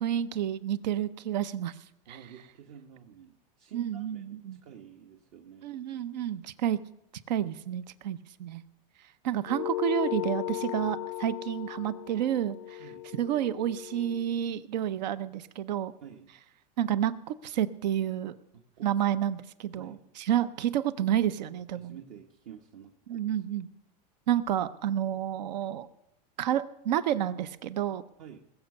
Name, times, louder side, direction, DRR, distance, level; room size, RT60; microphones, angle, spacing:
voice 1, 0.0-1.7 2.1-2.2 3.7-4.6 5.6-6.8 7.3-8.6 9.2-12.8 13.1-15.9 16.8-18.4 18.8-22.0 23.1-23.7 24.3-25.9 26.4-28.0, right 10 dB, 85° right, 15 dB, 0.8 m, -30 dB
voice 2, 2.0-5.7 7.4-7.5 12.8-13.1 16.0-16.3 18.8-18.9 19.7-20.0 21.7-23.2 28.2-28.4, right 9 dB, 60° right, 4 dB, 1.2 m, -48 dB
sound 1, 9.5-14.3, left 18 dB, 75° left, 0.4 m, -36 dB
20.5 x 7.2 x 6.6 m, 0.83 s
supercardioid pair, 135°, 21 cm